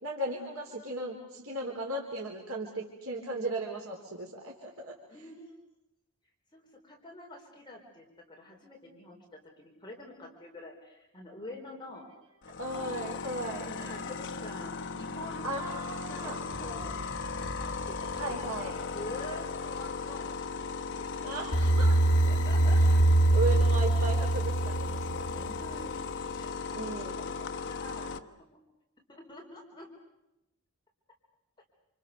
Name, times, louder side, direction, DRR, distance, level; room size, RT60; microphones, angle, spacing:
voice 1, 0.0-4.9 12.6-13.7 15.4-16.4 18.2-18.7 21.2-22.0 23.3-25.6 26.7-27.2, right 2 dB, 70° right, -1 dB, 3.9 m, -36 dB
voice 2, 5.1-5.5 6.5-12.1 13.6-15.5 16.1-16.3 16.6-20.6 21.0-21.7 22.2-23.0 23.5-24.1 25.6-28.6 29.1-29.9, left 1 dB, 20° left, -1 dB, 4.4 m, -47 dB
sound 1, 12.4-28.2, left 4 dB, 55° left, 1.2 m, -37 dB
sound 2, 16.5-19.0, left 1 dB, 40° right, 2.9 m, -44 dB
sound 3, 21.5-25.6, right 2 dB, 75° left, 1.7 m, -24 dB
28.5 x 28.0 x 6.8 m, 0.92 s
head